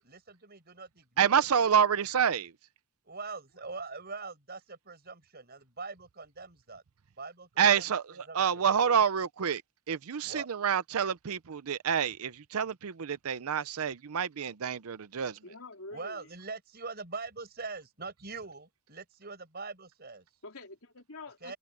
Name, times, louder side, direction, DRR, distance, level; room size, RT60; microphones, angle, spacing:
voice 1, 0.0-1.7 3.0-6.8 7.2-8.7 10.2-10.5 15.9-20.3 21.4-21.6, right 4 dB, 45° right, 6.8 m, -43 dB
voice 2, 1.2-2.5 7.6-9.6 9.9-15.4, right 7 dB, 75° right, 0.6 m, -28 dB
voice 3, 15.4-16.3 20.4-21.5, left 2 dB, 70° left, 4.2 m, -46 dB
head